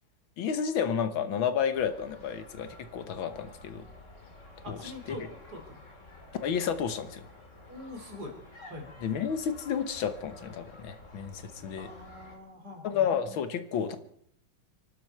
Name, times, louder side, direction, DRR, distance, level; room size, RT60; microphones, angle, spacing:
voice 1, 0.4-3.9 4.7-5.2 6.4-7.3 9.0-11.9 12.8-14.0, left 7 dB, 80° left, 10 dB, 2.0 m, -31 dB
sound 1, 1.7-12.4, left 2 dB, 40° left, 2.9 m, -51 dB
voice 2, 4.6-5.8 7.7-8.4 8.7-8.9 11.7-13.1, left 1 dB, 50° right, 3 dB, 4.1 m, -44 dB
26.0 x 12.5 x 4.5 m, 0.68 s
omnidirectional pair, 2.1 m